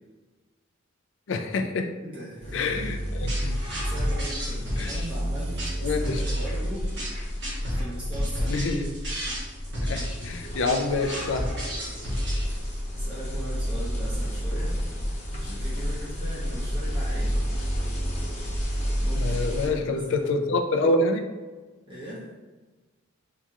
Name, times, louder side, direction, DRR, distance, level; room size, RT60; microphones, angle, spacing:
voice 1, 1.3-1.9 2.5-3.0 3.2-3.5 4.8-4.9 5.8-6.2 8.4-8.9 9.8-11.5 19.1-21.2, left 2 dB, 60° left, 6 dB, 0.4 m, -26 dB
voice 2, 2.0-3.4 3.7-6.9 7.6-8.6 12.9-14.8 15.4-17.4 19.0-20.5 21.9-22.3, right 1 dB, 25° right, -7 dB, 0.8 m, -39 dB
sound 1, 2.4-19.7, equal, 35° left, 0.7 m, -30 dB
sound 2, 3.3-12.8, equal, 55° right, 1.3 m, -32 dB
4.7 x 2.8 x 2.4 m, 1.3 s
head